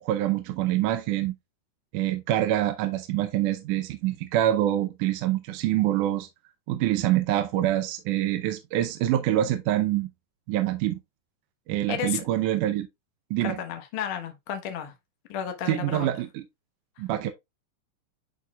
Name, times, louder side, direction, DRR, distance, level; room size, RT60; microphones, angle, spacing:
voice 1, 0.0-1.3 1.9-6.3 6.7-10.1 10.5-11.0 11.7-12.9 13.3-13.6 15.7-16.4 17.0-17.3, right 13 dB, 75° right, 2.0 m, -25 dB
voice 2, 11.9-12.2 13.4-14.9 15.3-16.1, left 8 dB, 80° left, 1.1 m, -32 dB
10.0 x 4.1 x 2.3 m
omnidirectional pair, 4.1 m